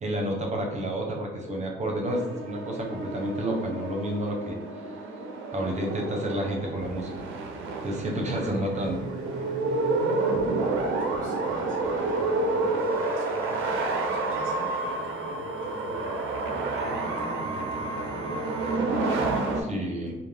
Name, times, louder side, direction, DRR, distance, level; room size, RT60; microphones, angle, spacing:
voice 1, 0.0-4.6 5.5-7.3 7.8-9.0 19.6-20.1, right 1 dB, 35° right, 1 dB, 0.6 m, -30 dB
sound 1, 2.1-19.6, right 3 dB, 85° right, 0.4 m, -29 dB
sound 2, 6.8-18.8, right 1 dB, 40° left, 0.9 m, -46 dB
voice 2, 10.8-16.2 16.7-18.4 20.0-20.1, left 1 dB, 80° left, -3 dB, 0.9 m, -44 dB
2.4 x 2.1 x 3.2 m, 1.2 s
cardioid pair, 90°, 20 cm